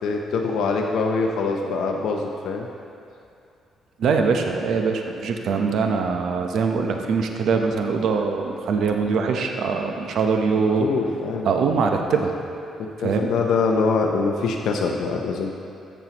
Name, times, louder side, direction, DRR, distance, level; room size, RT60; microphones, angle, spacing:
voice 1, 0.0-2.7 10.6-11.5 12.8-15.6, left 4 dB, 75° left, 1 dB, 0.6 m, -24 dB
voice 2, 4.0-10.9 11.4-12.3 13.0-13.3, right 5 dB, 70° right, 3 dB, 0.7 m, -22 dB
13.5 x 7.1 x 2.9 m, 2.6 s
cardioid pair, 90°, 0 cm